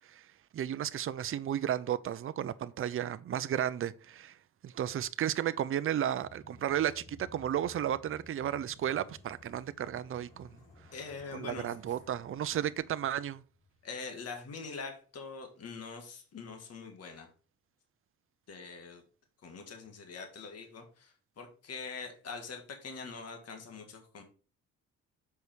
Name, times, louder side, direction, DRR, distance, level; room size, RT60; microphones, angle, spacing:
voice 1, 0.5-4.4 4.6-10.6 11.3-13.4, right 10 dB, 45° right, 0.6 m, -33 dB
sound 1, 6.2-14.3, left 2 dB, 85° left, 4.1 m, -57 dB
voice 2, 10.9-11.7 13.8-17.3 18.5-19.0 19.4-24.2, left 4 dB, 55° left, 1.8 m, -44 dB
6.9 x 5.0 x 4.6 m
cardioid pair, 90°, 30 cm